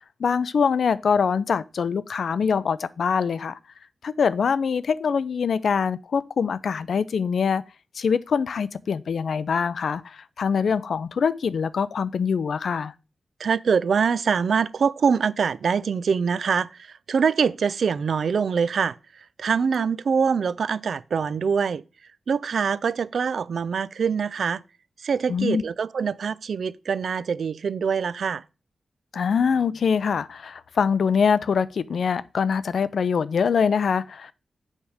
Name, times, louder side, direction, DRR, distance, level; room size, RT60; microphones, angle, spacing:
voice 1, 0.2-3.6 4.0-7.6 8.0-10.0 10.4-12.9 25.3-25.6 29.1-34.3, left 6 dB, 70° left, 0.4 m, -24 dB
voice 2, 13.4-19.0 19.4-21.8 22.3-24.6 25.0-28.4, right 6 dB, 70° right, 0.3 m, -24 dB
7.2 x 3.4 x 6.3 m
wide cardioid pair, 175°, 0 cm